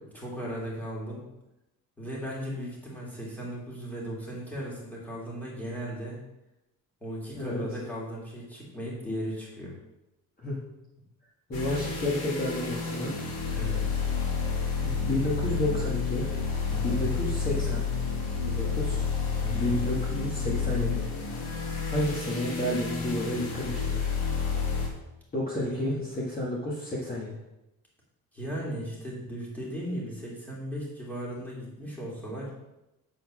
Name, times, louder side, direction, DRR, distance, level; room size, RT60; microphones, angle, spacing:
voice 1, 0.1-1.2 2.0-6.2 7.0-9.8 13.5-14.0 16.7-17.1 19.4-19.8 25.6-26.0 28.3-32.5, equal, 5° left, -5 dB, 2.5 m, -36 dB
sound 1, 11.5-24.9, left 5 dB, 85° left, 2.1 m, -30 dB
voice 2, 11.5-13.1 14.8-16.3 16.8-17.8 18.4-19.1 19.5-21.1 21.9-24.1 25.3-27.3, left 1 dB, 25° left, -6 dB, 1.7 m, -31 dB
8.0 x 4.5 x 6.0 m, 0.94 s
cardioid pair, 155°, 35 cm